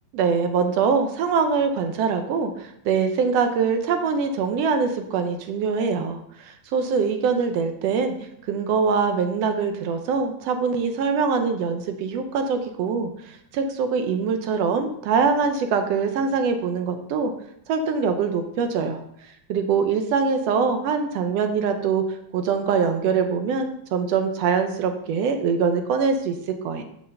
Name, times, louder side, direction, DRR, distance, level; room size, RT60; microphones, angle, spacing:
voice 1, 0.1-8.1 8.5-17.3 17.7-26.8, right 5 dB, 75° right, 7 dB, 1.6 m, -23 dB
6.3 x 5.4 x 6.7 m, 0.75 s
omnidirectional pair, 3.4 m